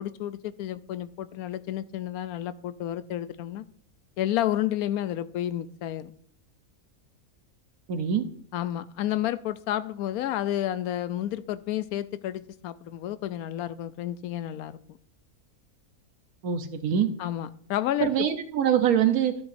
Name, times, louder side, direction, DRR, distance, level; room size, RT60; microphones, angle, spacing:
voice 1, 0.0-3.6 4.2-6.1 8.5-15.0 17.2-18.3, left 12 dB, 90° left, 15 dB, 1.1 m, -31 dB
voice 2, 7.9-8.3 16.4-17.1 18.0-19.4, right 9 dB, 85° right, 8 dB, 1.4 m, -24 dB
12.5 x 7.7 x 2.6 m, 0.62 s
omnidirectional pair, 1.5 m